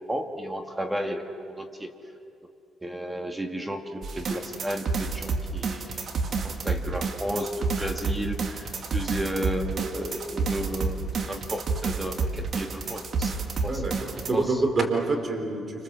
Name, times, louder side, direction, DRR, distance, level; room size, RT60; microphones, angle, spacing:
voice 1, 0.1-1.2 1.6-1.9 2.8-6.0 6.6-13.3 13.6-14.0 14.3-14.5, equal, 15° right, 4 dB, 2.2 m, -33 dB
sound 1, 4.0-14.3, right 4 dB, 55° right, 2.5 m, -29 dB
voice 2, 13.7-15.8, right 3 dB, 40° right, 5 dB, 4.2 m, -27 dB
29.0 x 27.0 x 7.6 m, 2.6 s
cardioid pair, 90°, 0 cm